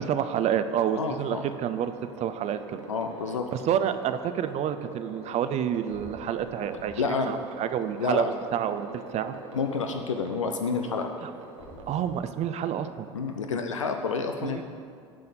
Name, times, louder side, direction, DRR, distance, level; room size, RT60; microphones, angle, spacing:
voice 1, 0.1-1.9 2.2-2.8 3.5-8.2 8.5-9.3 11.2-11.3 11.9-13.1 14.4-14.6, right 9 dB, 45° right, 10 dB, 0.5 m, -28 dB
voice 2, 0.9-1.5 2.9-3.5 7.0-7.3 8.0-8.3 9.5-11.1 13.1-14.6, left 5 dB, 90° left, 5 dB, 0.5 m, -29 dB
sound 1, 1.2-13.8, right 4 dB, 80° right, 1.1 m, -44 dB
sound 2, 5.5-5.6 5.9-7.2 7.5-8.6 11.4-13.0, left 1 dB, 65° left, 2.5 m, -51 dB
10.5 x 4.2 x 6.7 m, 2.1 s
hypercardioid pair, 70°, 16 cm